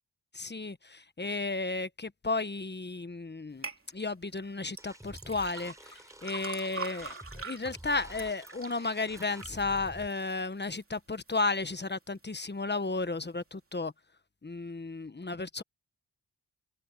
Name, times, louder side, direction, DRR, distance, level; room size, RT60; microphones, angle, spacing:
voice 1, 0.3-13.9 14.4-15.6, left 3 dB, 25° left, 1.2 m, -34 dB
sound 1, 3.6-3.8 4.7-10.8 11.3-11.8 12.3-12.4, right 4 dB, 35° right, 2.8 m, -44 dB
sound 2, 4.8-10.1, right 1 dB, 10° right, 3.8 m, -49 dB
cardioid pair, 50°, 40 cm